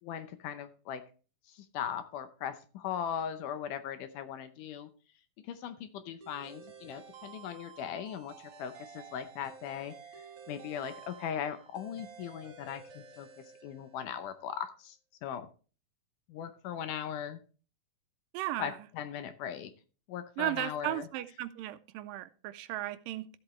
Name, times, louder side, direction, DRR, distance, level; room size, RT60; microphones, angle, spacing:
voice 1, 0.0-1.0 1.5-4.9 5.5-13.3 13.6-15.0 15.2-15.5 16.3-17.4 18.6-19.7 20.1-21.0, left 9 dB, 75° left, 10 dB, 2.1 m, -39 dB
sound 1, 6.2-14.3, right 6 dB, 45° right, 2.2 m, -52 dB
voice 2, 18.3-18.8 20.4-23.3, right 15 dB, 80° right, 12 dB, 2.2 m, -35 dB
13.5 x 7.8 x 3.1 m, 0.37 s
omnidirectional pair, 4.1 m